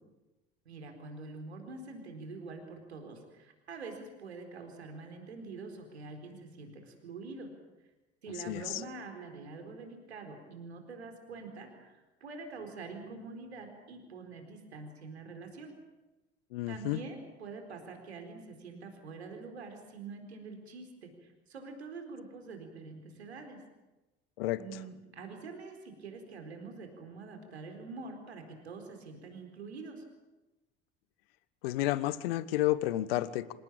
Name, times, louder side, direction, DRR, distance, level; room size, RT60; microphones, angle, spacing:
voice 1, 0.6-7.5 8.2-15.8 16.7-23.6 24.6-30.0, right 3 dB, 75° right, 5 dB, 4.4 m, -45 dB
voice 2, 8.5-8.8 16.5-17.0 24.4-24.8 31.6-33.5, left 15 dB, 60° left, 17 dB, 1.3 m, -31 dB
27.0 x 17.5 x 8.9 m, 1.1 s
figure-of-eight pair, 65°, 32 cm